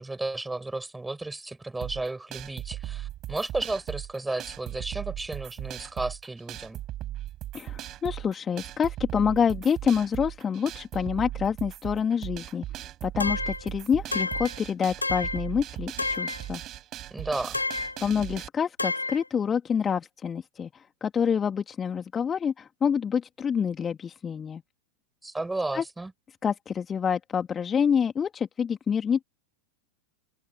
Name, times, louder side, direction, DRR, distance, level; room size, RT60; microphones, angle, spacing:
voice 1, 0.0-6.8 17.1-17.6 25.2-26.1, right 2 dB, 5° right, 6.9 m, -33 dB
sound 1, 1.8-18.5, right 14 dB, 35° right, 4.1 m, -38 dB
voice 2, 7.5-12.6 13.0-16.6 18.0-24.6 25.7-25.8 26.4-29.2, left 7 dB, 20° left, 2.6 m, -27 dB
sound 2, 13.2-13.7 14.1-14.6 15.0-15.5 16.0-16.4 17.5-18.0 18.8-19.2, left 3 dB, 80° left, 2.9 m, -30 dB
open air
figure-of-eight pair, 90°, 0 cm